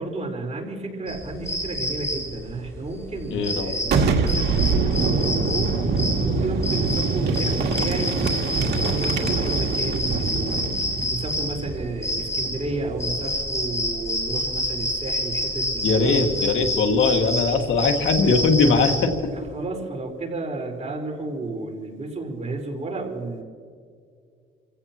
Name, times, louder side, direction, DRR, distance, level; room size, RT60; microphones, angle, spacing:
voice 1, 0.0-10.6 11.1-16.3 19.3-23.4, right 3 dB, 35° right, 1 dB, 4.7 m, -32 dB
sound 1, 1.1-19.3, left 1 dB, 15° left, 5.7 m, -28 dB
voice 2, 3.3-3.7 15.8-19.1, left 4 dB, 75° left, 4 dB, 2.1 m, -20 dB
Boom, 3.8-13.4, right 4 dB, 60° right, 2.4 m, -25 dB
29.5 x 16.0 x 3.0 m, 2.1 s
cardioid pair, 90°, 20 cm